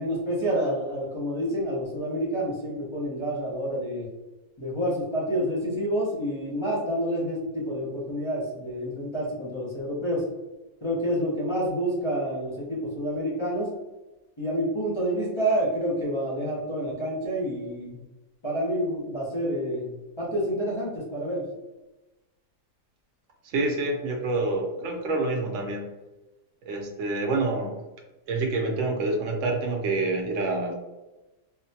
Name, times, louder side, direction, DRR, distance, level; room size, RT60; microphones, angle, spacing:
voice 1, 0.0-4.1 4.6-10.3 10.8-13.7 14.4-18.0 18.4-21.4, equal, 35° left, -8 dB, 0.4 m, -28 dB
voice 2, 23.4-25.9 26.6-27.8 28.3-30.7, right 2 dB, 65° right, 2 dB, 0.8 m, -27 dB
3.7 x 2.2 x 2.7 m, 1.1 s
omnidirectional pair, 1.7 m